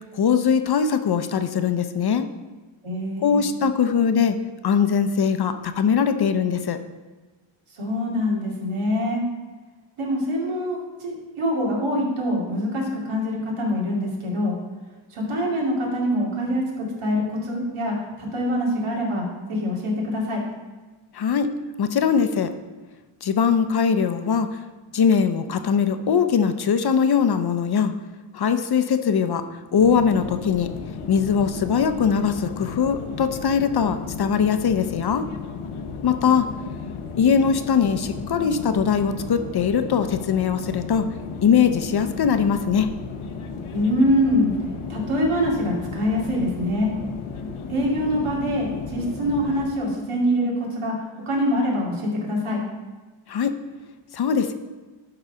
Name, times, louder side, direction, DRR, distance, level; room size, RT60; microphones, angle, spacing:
voice 1, 0.1-2.3 3.2-4.4 4.6-6.8 21.1-21.5 21.8-22.5 23.2-24.5 24.9-27.9 28.3-30.7 31.1-35.3 36.0-36.5 37.2-41.1 41.4-42.9 53.3-53.5 54.1-54.5, left 7 dB, 50° left, 9 dB, 0.6 m, -21 dB
voice 2, 2.8-3.4 7.7-9.2 10.0-14.6 15.1-20.4 43.7-44.5 44.9-46.9 47.7-52.6, equal, 80° right, -2 dB, 2.5 m, -24 dB
sound 1, 29.8-49.7, left 5 dB, 85° left, 0.8 m, -34 dB
12.0 x 4.0 x 5.6 m, 1.3 s
wide cardioid pair, 130°, 49 cm